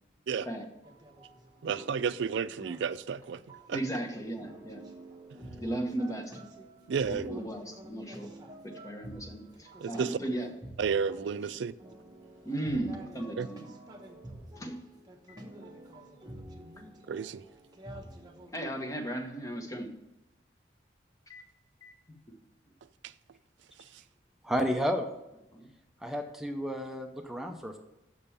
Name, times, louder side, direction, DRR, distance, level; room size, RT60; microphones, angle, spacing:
sound 1, 0.8-18.5, right 1 dB, 20° right, 1.0 m, -49 dB
voice 1, 1.6-3.4 3.7-3.8 6.9-7.4 9.8-10.2 10.8-11.8 13.4-13.5 17.1-17.4 23.0-23.1, right 6 dB, 80° right, 0.4 m, -31 dB
voice 2, 3.7-4.8 5.6-6.4 7.1-8.3 8.6-10.5 12.4-13.6 14.6-14.8 15.3-15.4 18.5-19.9 21.3-21.4 21.8-22.0 22.3-22.4 25.5-25.7, right 1 dB, 20° left, 1.1 m, -36 dB
voice 3, 24.4-25.1 26.0-27.8, equal, ahead, 0.5 m, -31 dB
6.7 x 5.3 x 7.0 m
head